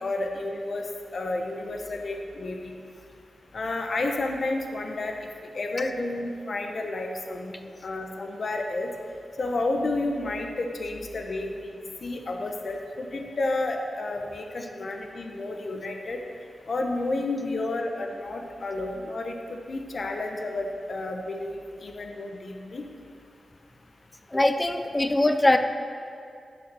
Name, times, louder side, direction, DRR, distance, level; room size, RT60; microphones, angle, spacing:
voice 1, 0.0-0.8 1.1-2.7 3.5-5.2 5.5-8.9 9.4-16.2 16.7-22.8, left 2 dB, 50° left, 3 dB, 1.0 m, -31 dB
voice 2, 24.3-25.6, left 1 dB, 15° left, 7 dB, 0.5 m, -21 dB
9.3 x 6.4 x 6.2 m, 2.4 s
wide cardioid pair, 110°, 0 cm